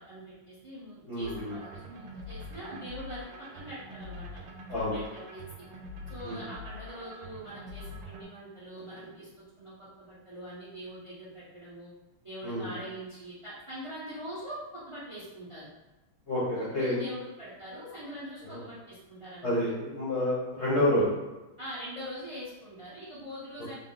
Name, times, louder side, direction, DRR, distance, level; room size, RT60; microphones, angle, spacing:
voice 1, 0.0-4.4 4.9-5.6 6.1-11.9 12.2-15.7 16.5-19.6 21.6-23.7, equal, 45° right, -8 dB, 0.3 m, -43 dB
voice 2, 1.1-1.5 4.7-5.0 6.2-6.4 12.4-12.7 16.3-17.0 18.4-18.6 19.4-21.1, left 1 dB, 50° left, -8 dB, 0.8 m, -28 dB
sound 1, 1.2-8.2, left 1 dB, 70° right, 1.2 m, -44 dB
3.7 x 2.1 x 3.7 m, 1.1 s
omnidirectional pair, 2.3 m